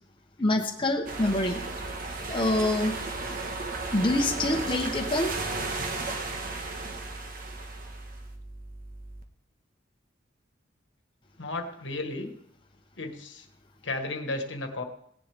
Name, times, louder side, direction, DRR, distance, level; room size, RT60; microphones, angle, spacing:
voice 1, 0.4-1.6 2.3-2.9 3.9-5.3, left 1 dB, 25° left, 1 dB, 1.1 m, -25 dB
sound 1, 1.1-9.2, right 3 dB, 45° right, 1.3 m, -35 dB
voice 2, 11.4-12.3 13.0-13.5 13.8-14.8, left 2 dB, 70° left, 5 dB, 1.5 m, -33 dB
17.5 x 10.5 x 3.5 m, 0.71 s
head